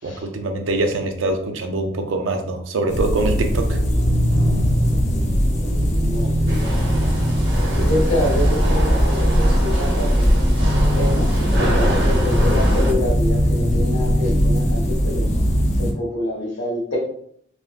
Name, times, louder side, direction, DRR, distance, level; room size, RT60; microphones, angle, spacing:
voice 1, 0.0-3.8, right 2 dB, 80° right, 5 dB, 0.5 m, -24 dB
sound 1, 2.9-15.9, equal, 35° left, 0.5 m, -19 dB
voice 2, 5.6-6.6 7.7-10.5 10.9-15.3 15.8-17.0, left 1 dB, 75° left, -4 dB, 1.4 m, -27 dB
sound 2, 6.5-12.9, equal, 60° right, 0.8 m, -25 dB
3.7 x 2.2 x 2.4 m, 0.65 s
head